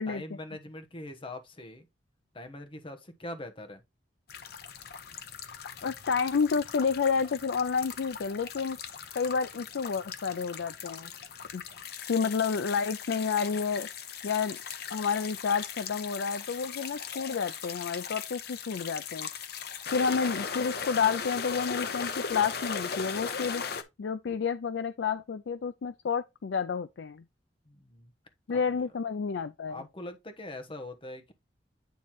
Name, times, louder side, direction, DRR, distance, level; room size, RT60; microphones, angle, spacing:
voice 1, 0.1-1.9 2.3-3.8 27.6-28.1 28.5-28.8 29.7-31.3, left 1 dB, 30° left, 1.1 m, -42 dB
sound 1, 4.3-23.8, left 6 dB, 60° left, 0.8 m, -38 dB
voice 2, 5.8-8.8 9.1-11.1 11.5-11.6 12.1-13.9 14.2-14.6 14.9-19.3 19.9-23.6 24.0-27.2 28.5-29.8, left 5 dB, 75° left, 0.4 m, -30 dB
9.2 x 3.1 x 4.2 m
head